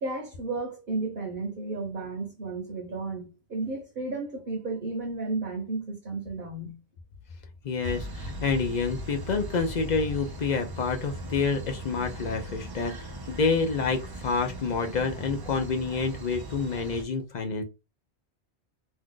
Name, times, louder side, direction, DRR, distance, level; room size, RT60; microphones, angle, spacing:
voice 1, 0.0-6.8, right 3 dB, 55° right, 0.9 m, -33 dB
voice 2, 7.6-17.6, left 4 dB, 50° left, 0.6 m, -28 dB
sound 1, 7.8-17.0, equal, 35° right, 0.3 m, -39 dB
2.7 x 2.4 x 3.6 m
omnidirectional pair, 1.1 m